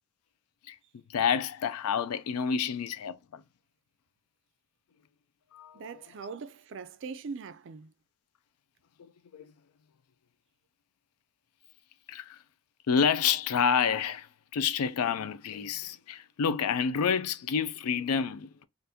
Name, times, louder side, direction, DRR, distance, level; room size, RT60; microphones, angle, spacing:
voice 1, 1.1-3.4 5.5-6.0 9.0-9.5 12.1-12.4 12.9-18.6, left 6 dB, 80° left, 0.4 m, -29 dB
voice 2, 5.7-7.9, right 5 dB, 55° right, 0.4 m, -41 dB
3.4 x 2.5 x 2.7 m
head